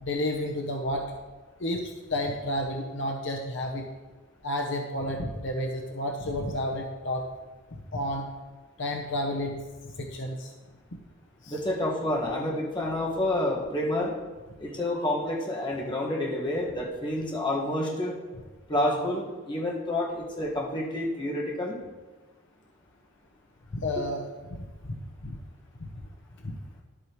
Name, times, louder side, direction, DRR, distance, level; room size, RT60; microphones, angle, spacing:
voice 1, 0.0-1.1 1.6-3.8 4.4-7.2 7.9-8.3 8.8-9.6 10.0-10.5 11.4-11.5 23.7-24.2 24.5-24.6 25.2-25.3 25.8-25.9 26.4-26.6, left 1 dB, 60° left, 2 dB, 0.8 m, -31 dB
voice 2, 11.5-14.1 14.6-18.2 18.7-21.8 24.0-24.1, left 1 dB, 25° left, -3 dB, 1.6 m, -29 dB
11.0 x 8.2 x 3.1 m, 1.3 s
head